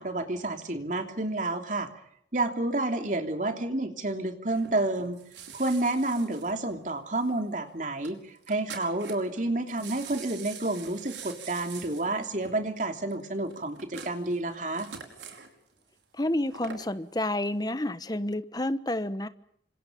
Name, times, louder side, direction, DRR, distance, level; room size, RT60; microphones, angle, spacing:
voice 1, 0.0-1.9 2.3-5.2 5.5-14.9, right 2 dB, 45° right, 6 dB, 3.1 m, -30 dB
sound 1, 4.5-7.3 7.6-7.7 8.0-8.1 8.4-9.4 9.7-15.5 16.3-17.0 17.5-17.6, right 6 dB, 80° right, 4.9 m, -45 dB
voice 2, 16.1-19.3, left 1 dB, 20° left, 12 dB, 1.2 m, -29 dB
29.0 x 26.5 x 5.3 m, 0.71 s
head